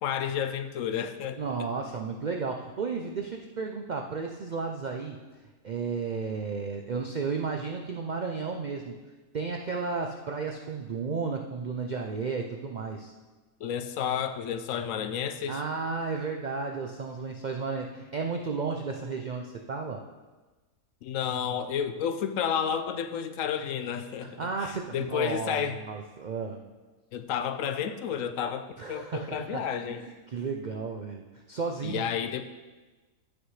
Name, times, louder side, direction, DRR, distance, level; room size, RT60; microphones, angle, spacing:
voice 1, 0.0-1.4 13.6-15.6 21.0-25.8 27.1-30.0 31.8-32.4, left 8 dB, 70° left, 9 dB, 0.9 m, -31 dB
voice 2, 1.4-5.2 5.6-9.0 9.3-13.1 15.5-20.0 24.2-26.6 28.8-29.6 30.0-32.0, right 4 dB, 65° right, 2 dB, 0.4 m, -33 dB
14.5 x 6.5 x 3.2 m, 1.2 s
omnidirectional pair, 1.5 m